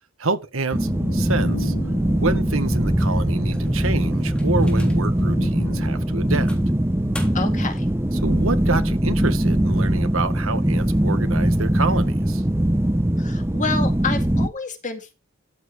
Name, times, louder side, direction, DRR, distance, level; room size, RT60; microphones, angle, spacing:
voice 1, 0.2-1.7 2.2-6.5 8.1-12.4, right 3 dB, 75° right, 1.5 m, -27 dB
sound 1, 0.7-14.5, right 1 dB, 10° right, 0.7 m, -21 dB
sound 2, 0.8-10.7 11.0-11.1, left 1 dB, 60° left, 1.1 m, -39 dB
sound 3, 3.5-5.2 5.8-5.9 6.5-7.7, left 1 dB, 5° left, 3.0 m, -42 dB
voice 2, 7.3-7.9 13.2-15.1, left 4 dB, 40° left, 2.1 m, -29 dB
13.0 x 8.0 x 3.4 m
head